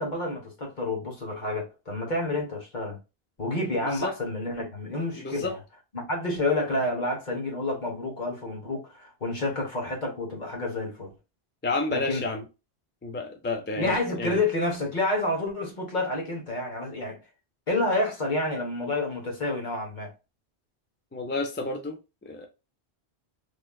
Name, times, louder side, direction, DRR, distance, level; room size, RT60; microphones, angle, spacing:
voice 1, 0.0-3.0 3.4-5.6 5.9-11.1 11.9-12.2 13.8-17.2 17.7-20.1, left 2 dB, 45° left, 1.3 m, -29 dB
voice 2, 3.8-4.1 5.2-5.5 11.6-12.4 13.0-14.4 21.1-22.5, left 3 dB, 20° left, 0.3 m, -31 dB
3.5 x 3.0 x 2.3 m
omnidirectional pair, 1.1 m